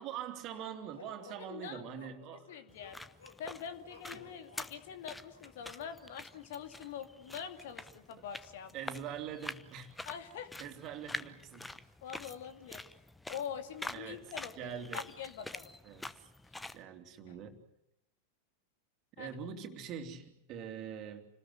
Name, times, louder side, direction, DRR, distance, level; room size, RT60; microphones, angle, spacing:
voice 1, 0.0-2.5 4.2-4.3 8.7-10.0 10.6-11.7 13.9-14.3 14.5-15.1 15.8-16.0 16.7-17.6 19.2-21.3, right 8 dB, 35° right, 5 dB, 3.1 m, -43 dB
sound 1, 0.9-5.8, left 5 dB, 70° left, 3.7 m, -57 dB
voice 2, 1.5-1.8 2.5-3.0 3.4-8.7 10.1-10.5 12.0-12.8 13.3-15.7 17.3-17.4 19.2-19.4, left 7 dB, 55° left, 8 dB, 2.5 m, -44 dB
sound 2, 2.7-16.8, left 2 dB, 5° left, 1.0 m, -47 dB
29.5 x 19.5 x 8.0 m, 0.82 s
figure-of-eight pair, 90°, 0 cm